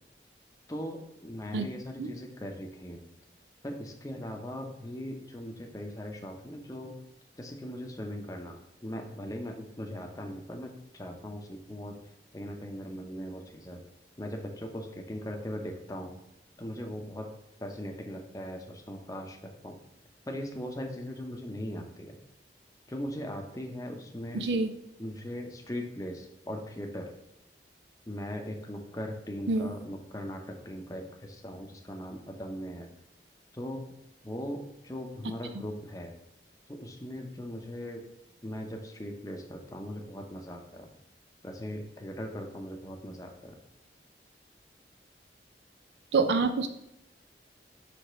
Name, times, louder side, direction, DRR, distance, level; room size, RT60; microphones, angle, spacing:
voice 1, 0.7-3.0 3.6-7.0 7.4-12.0 12.3-13.8 14.2-16.2 16.6-17.3 17.6-19.8 20.3-22.2 22.9-24.5 25.0-27.1 28.1-32.9 33.5-33.8 34.2-36.2 36.7-38.0 38.4-40.9 41.4-43.6, equal, 20° left, 2 dB, 0.7 m, -39 dB
voice 2, 24.3-24.7 29.5-29.7 46.1-46.7, right 3 dB, 80° right, 8 dB, 0.5 m, -26 dB
5.0 x 3.5 x 5.6 m, 0.84 s
head